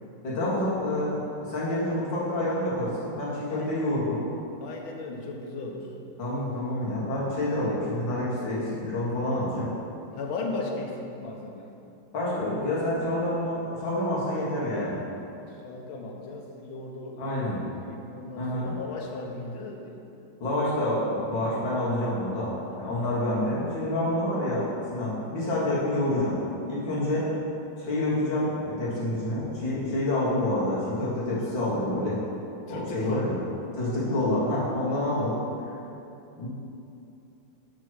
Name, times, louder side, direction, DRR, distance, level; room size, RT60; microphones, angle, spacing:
voice 1, 0.2-4.2 6.2-9.7 12.1-15.0 17.2-17.6 18.3-18.8 20.4-22.5 22.8-26.4 26.7-27.3 27.8-32.2 32.7-33.4 33.7-35.4 36.4-36.5, left 1 dB, 70° left, -8 dB, 2.6 m, -28 dB
voice 2, 3.5-3.8 4.6-5.9 10.1-11.7 15.5-20.1 22.7-23.0 32.7-33.3 34.9-35.0, left 3 dB, 90° left, 1 dB, 1.7 m, -37 dB
6.8 x 6.1 x 4.7 m, 2.8 s
omnidirectional pair, 2.2 m